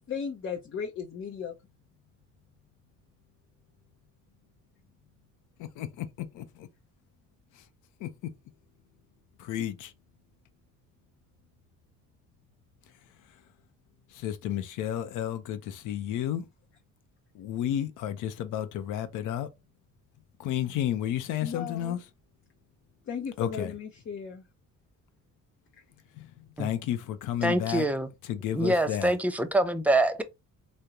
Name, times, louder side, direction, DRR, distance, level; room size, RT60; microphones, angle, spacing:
voice 1, 0.1-1.5 21.4-22.0 23.1-24.4 27.4-27.5, left 6 dB, 45° left, 0.6 m, -36 dB
voice 2, 5.6-6.7 7.5-7.6 8.0-8.3 9.4-9.9 14.1-16.5 17.3-19.5 20.4-22.0 23.4-23.7 26.1-27.9 28.2-29.1, left 11 dB, 90° left, 0.6 m, -32 dB
voice 3, 27.4-28.1 28.5-30.2, right 1 dB, 5° right, 0.4 m, -25 dB
3.6 x 2.1 x 2.8 m
cardioid pair, 90°, 30 cm